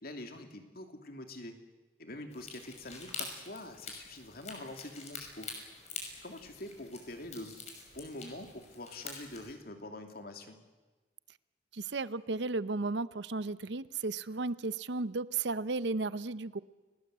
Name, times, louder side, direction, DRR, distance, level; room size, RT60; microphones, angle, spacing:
voice 1, 0.0-1.5 2.0-5.5 6.2-7.6 7.9-10.6, left 1 dB, 55° left, 5 dB, 2.8 m, -45 dB
sound 1, 2.3-9.5, left 4 dB, 40° left, 5.8 m, -46 dB
voice 2, 11.7-16.6, right 3 dB, 70° right, 16 dB, 0.8 m, -34 dB
29.5 x 19.0 x 8.1 m, 1.3 s
head